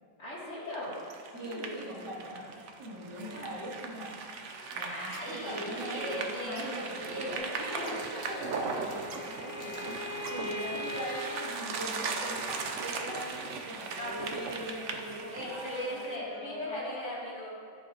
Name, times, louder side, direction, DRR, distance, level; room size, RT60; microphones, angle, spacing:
voice 1, 0.2-0.9 1.3-1.9 4.8-8.0 14.0-14.1 15.3-17.5, left 1 dB, 35° left, -8 dB, 3.0 m, -38 dB
sound 1, 0.7-16.2, right 4 dB, 90° right, 0.6 m, -38 dB
voice 2, 1.3-4.1 4.7-17.1, equal, 55° right, -8 dB, 3.4 m, -41 dB
sound 2, 8.0-10.4, right 1 dB, 20° right, 1.4 m, -54 dB
Bowed string instrument, 8.2-11.3, left 2 dB, 55° left, 1.6 m, -41 dB
13.5 x 7.8 x 2.9 m, 2.4 s
omnidirectional pair, 2.2 m